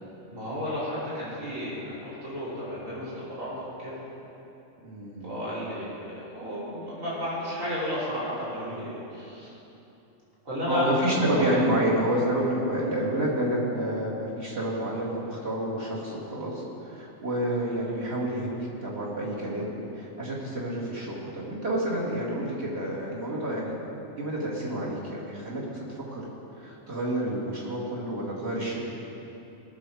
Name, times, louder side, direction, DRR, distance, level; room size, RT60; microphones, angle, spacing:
voice 1, 0.3-4.1 5.2-9.5 10.5-11.6 17.6-18.0, equal, 70° right, -9 dB, 3.6 m, -33 dB
voice 2, 4.8-5.5 8.7-8.9 10.7-23.7 24.2-26.3 26.6-28.8, right 1 dB, 50° right, -6 dB, 2.7 m, -29 dB
18.5 x 6.9 x 4.8 m, 3.0 s
omnidirectional pair, 1.4 m